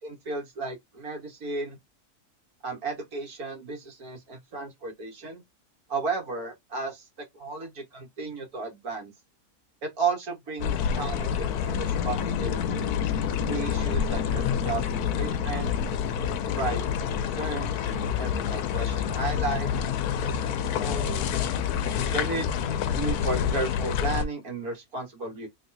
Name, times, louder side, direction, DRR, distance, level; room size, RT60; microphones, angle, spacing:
voice 1, 0.2-1.8 2.6-5.4 5.9-9.1 9.8-12.8 13.5-14.8 15.2-15.7 16.6-17.8 18.2-19.7 20.2-21.2 22.1-22.6 22.9-25.5, right 3 dB, 75° right, 2.0 m, -34 dB
sound 1, 10.6-24.2, left 8 dB, 80° left, 1.1 m, -27 dB
3.4 x 3.1 x 2.6 m
omnidirectional pair, 1.6 m